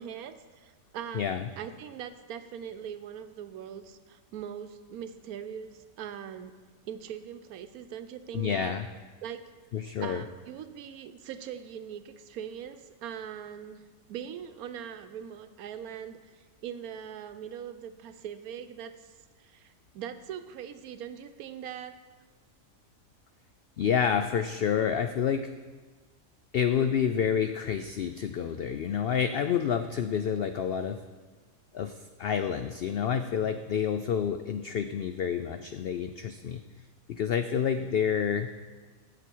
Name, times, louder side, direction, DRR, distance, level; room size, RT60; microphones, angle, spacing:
voice 1, 0.0-1.3 1.6-6.6 6.9-8.8 9.2-9.4 9.8-13.8 14.1-19.1 19.4-22.0, right 9 dB, 80° right, 10 dB, 1.1 m, -41 dB
voice 2, 1.1-1.5 8.3-8.9 9.7-10.2 23.8-25.5 26.5-31.0 31.7-36.6 37.1-38.5, left 8 dB, 85° left, 9 dB, 0.5 m, -28 dB
15.0 x 6.2 x 4.5 m, 1.4 s
omnidirectional pair, 1.5 m